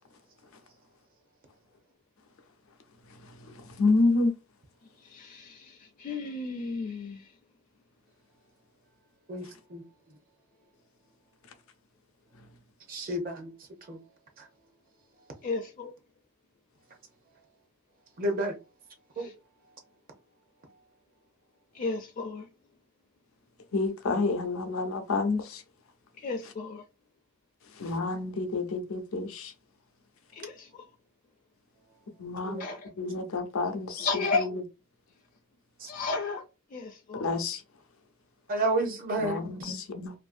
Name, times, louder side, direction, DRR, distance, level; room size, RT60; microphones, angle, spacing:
voice 1, 3.8-4.4 23.7-25.6 27.8-29.5 32.2-32.6 33.0-34.2 37.2-37.6 39.2-40.1, left 3 dB, 80° left, 0.6 m, -28 dB
voice 2, 5.0-7.3 15.4-15.9 19.2-19.3 21.7-22.5 26.2-26.8 30.3-30.9 32.6-32.9 34.0-34.5 35.9-36.4 36.7-37.3, left 3 dB, 40° left, 0.4 m, -33 dB
voice 3, 9.3-9.8 12.9-13.5 13.9-14.0 18.2-18.6 19.2-19.3 32.4-32.6 35.8-35.9 38.5-39.8, right 2 dB, 40° right, 0.6 m, -31 dB
2.5 x 2.5 x 2.5 m
head